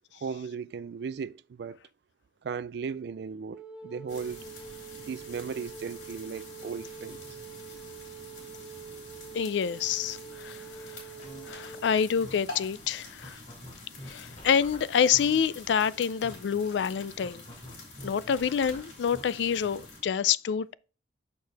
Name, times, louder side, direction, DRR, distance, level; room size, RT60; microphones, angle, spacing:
voice 1, 0.1-1.8 2.4-4.5 5.1-7.4, right 6 dB, 60° right, 0.3 m, -37 dB
Wind instrument woodwind instrument, 3.5-12.0, right 7 dB, 5° right, 1.0 m, -45 dB
sound 1, 4.1-20.0, left 2 dB, 90° left, 4.2 m, -47 dB
voice 2, 9.3-10.6 11.5-13.4 14.1-17.4 18.0-20.7, left 7 dB, 75° left, 0.4 m, -27 dB
sound 2, 11.2-11.8 12.1-12.3 12.8-12.9 13.2-15.8 16.1-16.3 17.2-19.2, left 1 dB, 40° left, 2.7 m, -46 dB
6.6 x 6.2 x 3.4 m
head